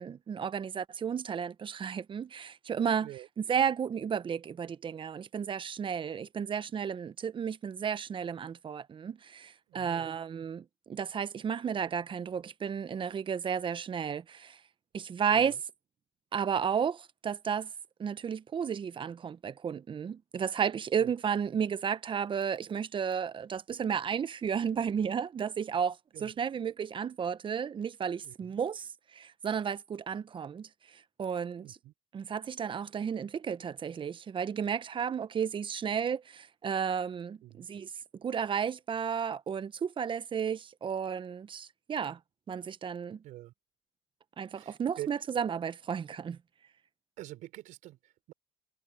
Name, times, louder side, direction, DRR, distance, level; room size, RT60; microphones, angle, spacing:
voice 1, 0.0-3.1 3.4-14.6 14.9-15.5 16.3-17.7 18.0-31.8 32.1-37.9 38.2-42.2 42.5-43.2 44.4-46.4, right 7 dB, 35° right, 1.1 m, -33 dB
voice 2, 9.7-10.2 15.3-15.6 21.0-21.1 26.1-26.3 28.2-28.5 31.6-31.9 37.4-37.7 43.2-43.5 44.5-45.1 47.2-48.3, right 15 dB, 65° right, 4.1 m, -46 dB
supercardioid pair, 75°, 14 cm